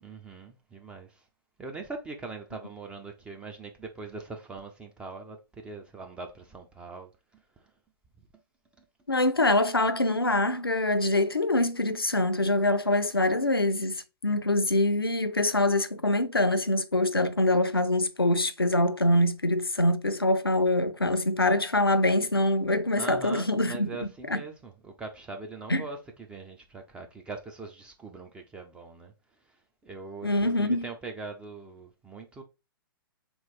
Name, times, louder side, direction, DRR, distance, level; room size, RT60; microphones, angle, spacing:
voice 1, 0.0-1.1 1.6-5.4 5.6-7.1 23.0-26.0 26.3-29.1 29.8-32.4, right 3 dB, 10° right, 0.3 m, -41 dB
voice 2, 9.1-23.9 24.3-24.4 25.7-25.8 30.2-30.9, left 1 dB, 85° left, 0.5 m, -24 dB
3.9 x 3.0 x 3.0 m
figure-of-eight pair, 115°, 12 cm